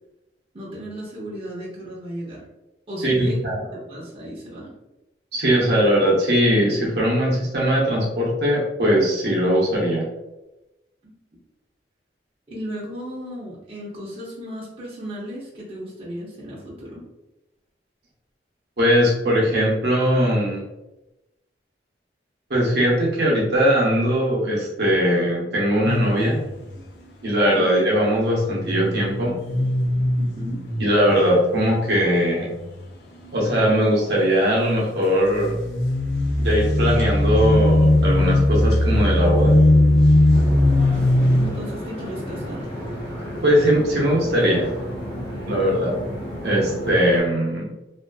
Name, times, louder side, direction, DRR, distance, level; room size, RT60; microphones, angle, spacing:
voice 1, 0.5-2.4 2.9-3.4 3.7-4.7 11.0-11.1 12.5-17.0 27.5-27.6 30.1-30.6 40.9-42.7, equal, 30° right, -6 dB, 0.6 m, -34 dB
voice 2, 3.0-3.6 5.3-10.1 18.8-20.6 22.5-26.4 27.2-29.4 30.8-32.5 33.3-35.6 36.4-39.6 43.4-44.7 45.4-45.9 46.4-47.7, equal, 65° right, -4 dB, 0.7 m, -20 dB
sound 1, 25.8-26.8 28.3-32.9 33.2-33.7 35.2-41.5, left 1 dB, 70° left, 0.5 m, -20 dB
sound 2, 40.3-47.2, equal, 30° left, 0.8 m, -32 dB
2.5 x 2.4 x 2.2 m, 0.98 s
head